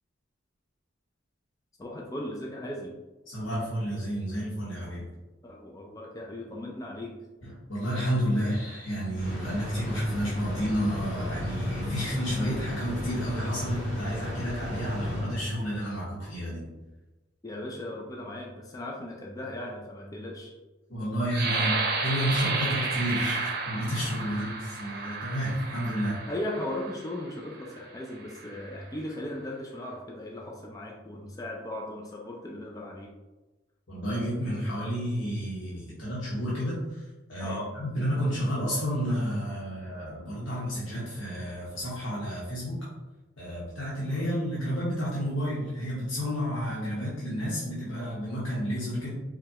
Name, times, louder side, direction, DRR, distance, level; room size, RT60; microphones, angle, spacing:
voice 1, 1.8-3.0 5.4-7.2 17.4-20.5 21.5-21.9 24.4-24.6 26.3-33.1 37.4-37.8, left 1 dB, 20° left, -1 dB, 0.4 m, -37 dB
voice 2, 3.3-5.1 7.4-16.6 20.9-21.7 22.0-26.1 33.9-37.0 37.3-42.8 43.4-49.1, equal, 80° left, -8 dB, 1.1 m, -31 dB
sound 1, 9.1-15.8, left 1 dB, 35° left, 1.5 m, -33 dB
sound 2, 21.3-26.9 27.6-27.8 28.2-28.7, right 3 dB, 50° right, 0.7 m, -32 dB
4.9 x 2.3 x 2.8 m, 1.1 s
head